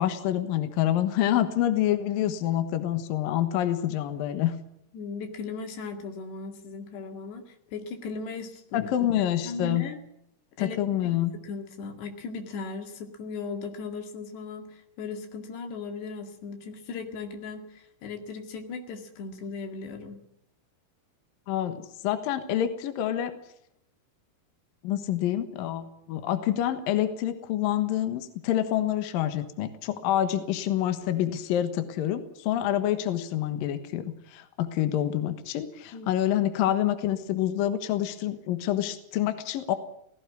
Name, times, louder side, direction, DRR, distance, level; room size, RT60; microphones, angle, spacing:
voice 1, 0.0-4.5 8.7-9.9 10.6-11.4 21.5-23.3 24.8-39.8, left 12 dB, 65° left, 9 dB, 2.9 m, -27 dB
voice 2, 4.9-8.9 9.4-10.0 10.6-10.8 11.4-20.2 35.9-36.1, left 4 dB, 85° left, 6 dB, 4.3 m, -37 dB
17.0 x 16.5 x 9.6 m, 0.74 s
omnidirectional pair, 4.7 m